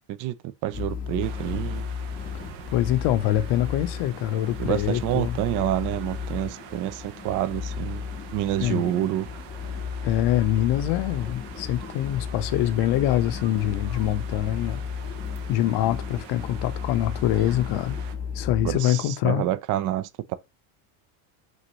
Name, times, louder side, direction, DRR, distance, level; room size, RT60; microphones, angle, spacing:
voice 1, 0.6-1.8 4.6-8.0 8.3-9.3 18.6-20.4, right 13 dB, 45° right, 0.4 m, -28 dB
sound 1, 0.7-18.8, left 6 dB, 20° left, 0.6 m, -34 dB
sound 2, 1.2-18.2, right 9 dB, 65° right, 0.9 m, -45 dB
voice 2, 2.7-5.4 8.6-8.9 10.0-14.8 15.5-18.0 18.3-19.4, left 13 dB, 60° left, 0.7 m, -24 dB
6.1 x 2.6 x 3.0 m
supercardioid pair, 115°, 47 cm